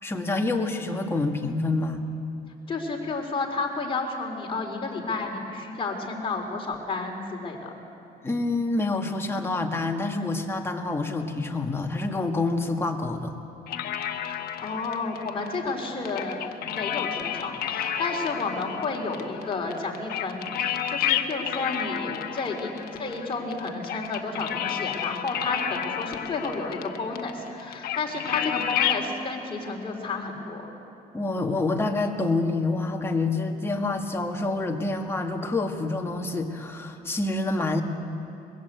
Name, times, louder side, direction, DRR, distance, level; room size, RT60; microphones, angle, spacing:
voice 1, 0.0-2.1 8.2-13.3 28.4-28.5 31.1-37.8, left 2 dB, 15° left, 2 dB, 1.9 m, -27 dB
voice 2, 2.7-7.8 14.2-16.4 16.6-22.7 23.0-30.7, left 3 dB, 30° left, 0 dB, 3.7 m, -31 dB
sound 1, 13.7-29.1, left 9 dB, 65° left, 1.1 m, -31 dB
22.0 x 16.0 x 8.1 m, 2.7 s
cardioid pair, 110°, 17 cm